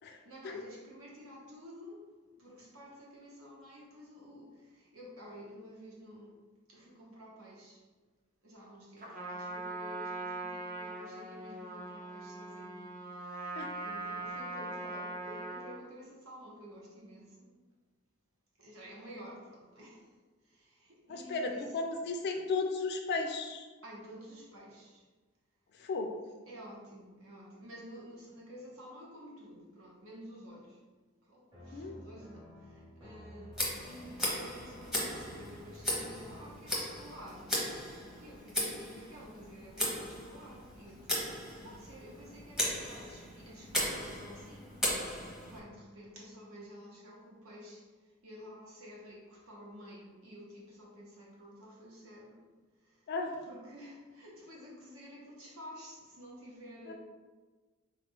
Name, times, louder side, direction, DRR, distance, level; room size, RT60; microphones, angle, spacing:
voice 1, 0.1-2.1 2.4-6.4 6.7-7.9 8.4-12.9 13.2-17.5 18.6-20.1 20.4-21.7 23.8-25.1 26.5-30.8 31.2-37.7 38.2-41.2 41.6-44.8 45.2-52.4 52.8-53.1 53.4-56.9, equal, 70° right, -4 dB, 1.0 m, -51 dB
Trumpet, 9.0-15.8, right 2 dB, 40° right, 0.6 m, -41 dB
voice 2, 21.1-23.7 25.8-26.1 31.7-32.0 53.1-53.4 56.9-57.0, left 3 dB, 50° left, 4 dB, 0.3 m, -35 dB
sound 1, 31.5-37.1, equal, 20° right, 1.0 m, -53 dB
Tick, 33.5-45.6, left 1 dB, ahead, 0.8 m, -37 dB
3.9 x 2.3 x 3.6 m, 1.3 s
head